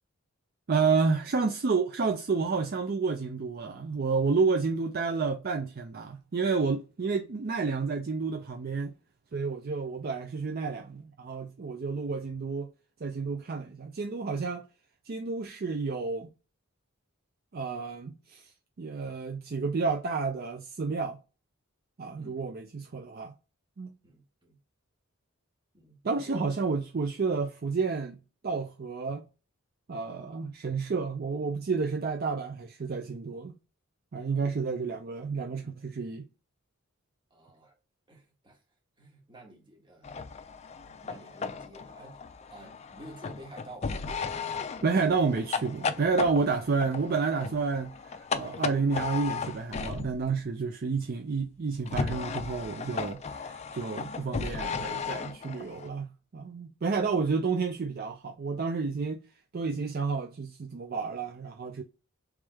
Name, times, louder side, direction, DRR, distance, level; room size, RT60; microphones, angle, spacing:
voice 1, 0.7-8.9 9.3-12.7 13.0-14.7 15.1-16.3 17.5-18.5 18.8-21.2 22.0-23.3 23.8-23.9 26.0-29.2 29.9-33.5 34.1-36.3 44.8-59.2 59.5-61.8, right 4 dB, 45° right, 0.5 m, -30 dB
voice 2, 24.0-24.6 25.7-26.4 37.3-37.7 38.1-38.6 39.0-40.2 40.8-42.2 42.5-44.0, right 1 dB, 25° right, 1.3 m, -50 dB
sound 1, 40.0-50.4 51.9-55.9, left 5 dB, 30° left, 0.3 m, -36 dB
3.4 x 3.2 x 3.4 m
head